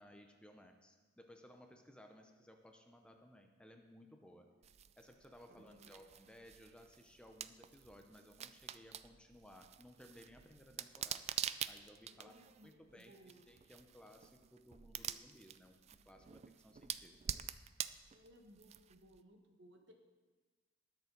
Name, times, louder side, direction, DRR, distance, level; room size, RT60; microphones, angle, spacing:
voice 1, 0.0-4.5 5.0-11.3 11.7-17.2, equal, 5° left, 4 dB, 0.7 m, -60 dB
sound 1, 4.6-19.2, right 9 dB, 35° right, 0.3 m, -47 dB
voice 2, 5.5-6.0 12.1-13.5 18.1-19.9, equal, 65° right, 3 dB, 1.5 m, -62 dB
20.0 x 6.9 x 3.9 m, 1.3 s
head